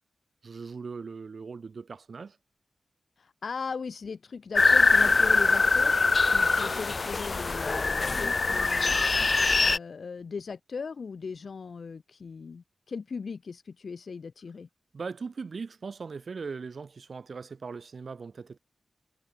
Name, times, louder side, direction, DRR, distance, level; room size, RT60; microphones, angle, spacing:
voice 1, 0.4-2.4 14.9-18.6, right 5 dB, 65° right, 2.1 m, -39 dB
voice 2, 3.2-9.0 9.6-14.7, left 5 dB, 70° left, 1.6 m, -38 dB
sound 1, 4.6-9.8, left 3 dB, 50° left, 0.8 m, -23 dB
cardioid pair, 60°, 0 cm